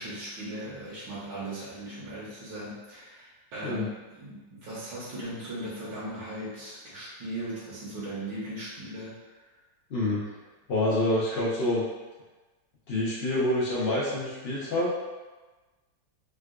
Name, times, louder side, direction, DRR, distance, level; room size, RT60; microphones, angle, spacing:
voice 1, 0.0-9.1, right 1 dB, 70° right, -9 dB, 1.5 m, -38 dB
voice 2, 10.7-11.8 12.9-15.1, left 1 dB, 75° left, -8 dB, 0.5 m, -27 dB
3.7 x 2.2 x 2.4 m, 1.2 s
omnidirectional pair, 2.1 m